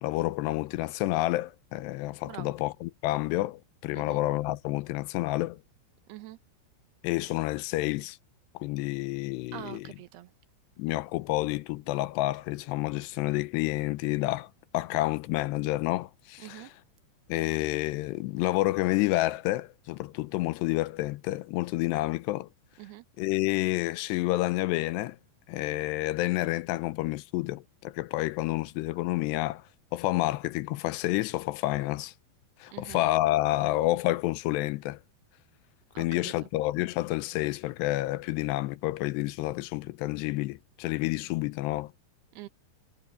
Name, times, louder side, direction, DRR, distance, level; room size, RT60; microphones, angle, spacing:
voice 1, 0.0-5.6 7.0-8.2 8.5-9.9 10.8-14.5 14.7-16.7 17.3-22.5 23.2-25.2 25.5-29.6 29.9-32.1 32.6-35.0 36.0-41.9, left 18 dB, 90° left, 2.8 m, -29 dB
voice 2, 6.1-6.4 9.5-10.3 16.4-16.7 22.8-23.0 32.7-33.0 35.9-36.3 42.3-42.5, right 15 dB, 75° right, 2.9 m, -44 dB
omnidirectional pair, 4.9 m